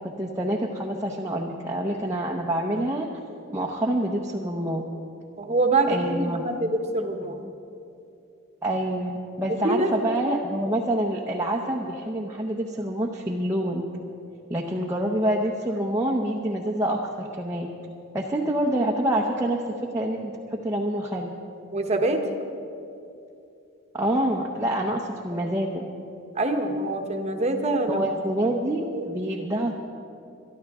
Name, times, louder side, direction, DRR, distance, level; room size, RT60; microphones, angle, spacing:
voice 1, 0.0-3.1 3.5-4.8 5.9-6.4 8.6-13.8 14.5-17.7 18.1-19.6 19.9-21.3 23.9-25.9 27.9-29.7, right 1 dB, 15° right, -2 dB, 0.7 m, -27 dB
voice 2, 5.4-7.4 9.6-10.3 21.7-22.2 26.4-28.0 28.9-29.1, right 2 dB, 30° right, 4 dB, 1.0 m, -25 dB
23.0 x 12.0 x 3.6 m, 2.7 s
head